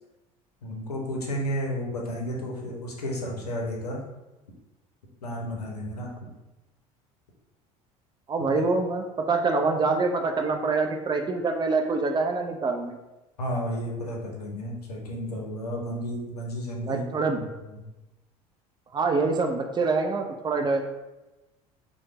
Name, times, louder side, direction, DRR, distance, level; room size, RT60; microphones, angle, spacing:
voice 1, 0.6-4.0 5.2-6.3 8.4-8.6 13.4-17.0 17.6-17.8, equal, 90° left, -1 dB, 0.6 m, -32 dB
voice 2, 8.3-13.0 16.8-17.4 18.9-20.8, right 3 dB, 25° right, 4 dB, 0.4 m, -25 dB
3.1 x 2.0 x 3.0 m, 1.0 s
hypercardioid pair, 70°, 19 cm